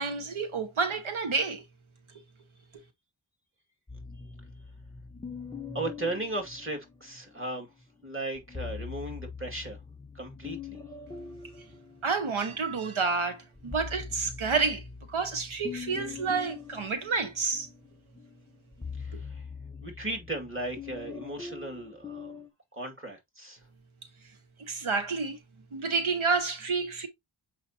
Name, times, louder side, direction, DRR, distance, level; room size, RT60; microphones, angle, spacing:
voice 1, 0.0-1.6 12.0-14.8 15.1-17.7 24.6-25.4 25.7-27.1, right 4 dB, 85° right, 1.1 m, -29 dB
sound 1, 3.9-7.4 8.3-12.8 13.2-22.5, left 5 dB, 10° left, 1.0 m, -43 dB
voice 2, 5.7-7.7 8.0-9.8 10.1-10.8 19.0-19.4 19.8-22.4 22.7-23.6, right 2 dB, 25° right, 2.2 m, -36 dB
7.1 x 4.9 x 2.8 m
wide cardioid pair, 70°, 47 cm